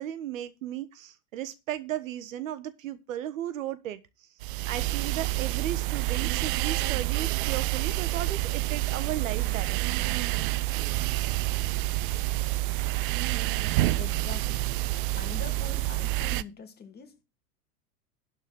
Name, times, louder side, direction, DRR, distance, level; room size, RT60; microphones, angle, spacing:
voice 1, 0.0-4.0 4.6-10.1, right 11 dB, 55° right, 1.3 m, -35 dB
sound 1, 4.4-16.4, right 18 dB, 35° right, 0.5 m, -28 dB
voice 2, 14.0-14.7 15.2-17.2, left 5 dB, 20° left, 2.3 m, -43 dB
12.0 x 4.5 x 7.7 m
figure-of-eight pair, 95°, 46 cm